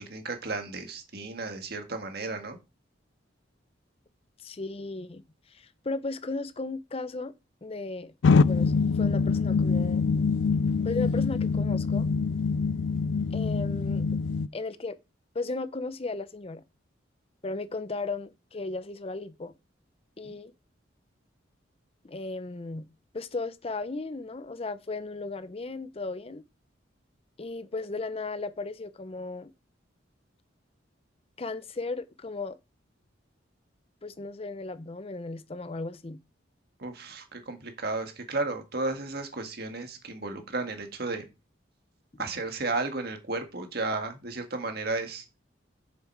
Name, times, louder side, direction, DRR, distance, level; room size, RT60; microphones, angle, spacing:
voice 1, 0.0-2.6 20.2-20.4 36.8-41.3 42.2-45.2, right 3 dB, 55° right, 1.8 m, -33 dB
voice 2, 4.4-5.2 5.5-7.3 7.6-8.1 8.4-10.1 10.8-12.1 13.3-14.1 14.5-15.0 15.3-16.6 17.4-19.5 20.2-20.5 22.0-22.9 23.1-26.4 27.4-29.5 31.4-32.6 34.0-36.2, left 3 dB, 30° left, 0.6 m, -35 dB
sound 1, 8.2-14.5, left 4 dB, 85° left, 0.4 m, -24 dB
7.4 x 7.2 x 4.6 m
head